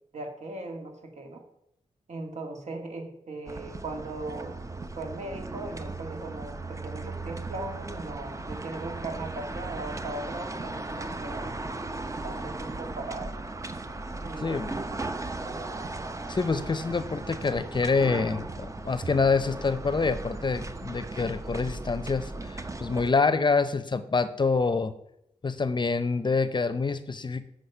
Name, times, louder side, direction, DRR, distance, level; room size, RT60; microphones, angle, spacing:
voice 1, 0.1-1.4 2.1-4.6 5.0-11.6 12.2-13.3 14.2-15.1 15.4-15.8, right 2 dB, 65° right, 3 dB, 1.8 m, -38 dB
sound 1, 3.5-23.1, right 2 dB, 25° right, 0.6 m, -37 dB
voice 2, 14.4-14.8 16.3-24.9 25.4-27.5, left 4 dB, 40° left, 12 dB, 0.6 m, -26 dB
8.0 x 6.4 x 5.6 m, 0.78 s
wide cardioid pair, 95°, 13 cm